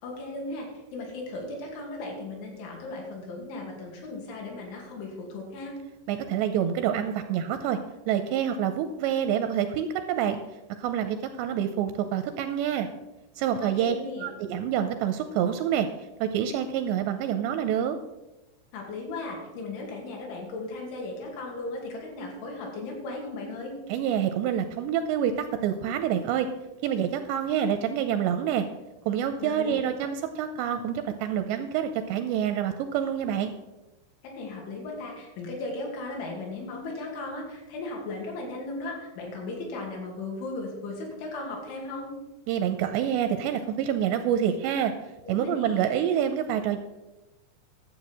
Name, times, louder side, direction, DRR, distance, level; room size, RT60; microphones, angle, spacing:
voice 1, 0.0-5.7 13.6-14.3 18.7-23.7 29.4-29.8 34.2-42.1 45.2-45.9, left 2 dB, 75° left, 0 dB, 4.8 m, -36 dB
voice 2, 6.1-7.8 8.1-10.4 10.8-12.9 13.4-14.0 14.2-15.9 16.2-18.0 23.9-26.5 26.8-28.6 29.1-33.5 42.5-44.9 45.3-46.8, right 9 dB, 85° right, 8 dB, 2.5 m, -27 dB
12.0 x 7.6 x 6.2 m, 1.0 s
omnidirectional pair, 5.4 m